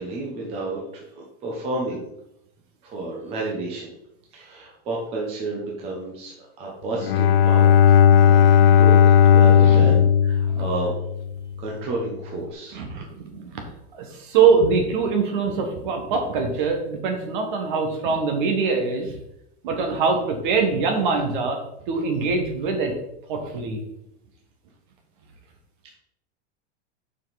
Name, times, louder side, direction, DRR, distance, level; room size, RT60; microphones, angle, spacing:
voice 1, 0.0-2.1 2.8-3.9 4.3-7.7 8.2-9.0 9.3-10.9 11.6-12.8, right 2 dB, 15° right, -3 dB, 1.0 m, -31 dB
Bowed string instrument, 7.0-11.5, left 8 dB, 55° left, 0.5 m, -15 dB
voice 2, 9.4-10.0 10.5-10.6 12.7-13.6 13.9-19.1 19.6-21.6 21.9-22.9 23.3-23.8, right 5 dB, 45° right, 3 dB, 1.6 m, -23 dB
7.3 x 5.9 x 4.1 m, 0.80 s
supercardioid pair, 180°, 35 cm